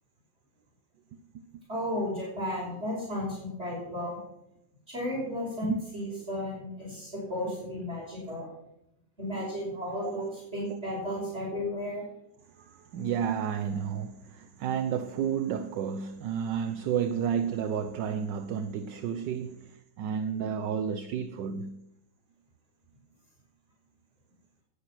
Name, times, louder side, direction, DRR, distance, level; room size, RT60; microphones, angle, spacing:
voice 1, 1.7-4.2 4.9-8.5 9.2-12.0, left 1 dB, 30° right, 6.2 m, -34 dB
voice 2, 12.5-21.8, right 8 dB, 70° right, 1.4 m, -31 dB
18.5 x 10.5 x 6.2 m
omnidirectional pair, 2.1 m